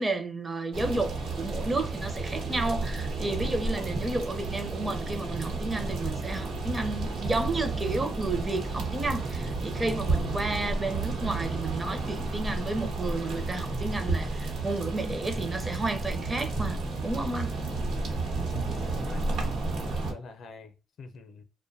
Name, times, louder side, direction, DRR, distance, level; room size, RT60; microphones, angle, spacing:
voice 1, 0.0-17.6, right 2 dB, 25° right, 0.5 m, -32 dB
sound 1, 0.7-20.1, right 3 dB, 80° right, 1.0 m, -32 dB
voice 2, 10.1-10.4 18.2-19.3 19.7-21.4, left 5 dB, 65° left, 0.5 m, -46 dB
2.5 x 2.1 x 2.5 m
cardioid pair, 90°, 0 cm